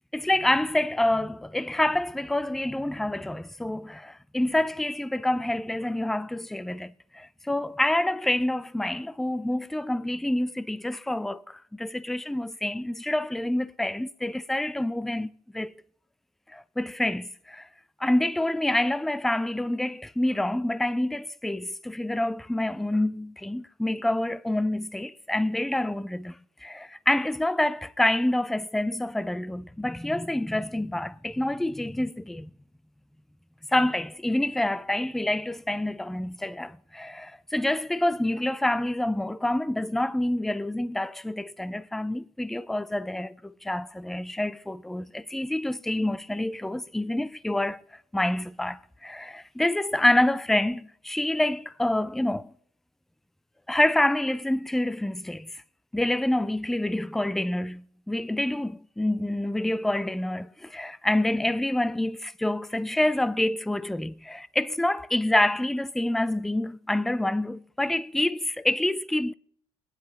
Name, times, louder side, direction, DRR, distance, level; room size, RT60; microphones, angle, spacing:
voice 1, 0.1-15.7 16.5-17.7 18.0-32.5 33.7-47.8 48.1-52.5 53.7-55.6 55.9-69.3, left 1 dB, ahead, 0.4 m, -27 dB
20.0 x 9.9 x 3.2 m
supercardioid pair, 95°, 12 cm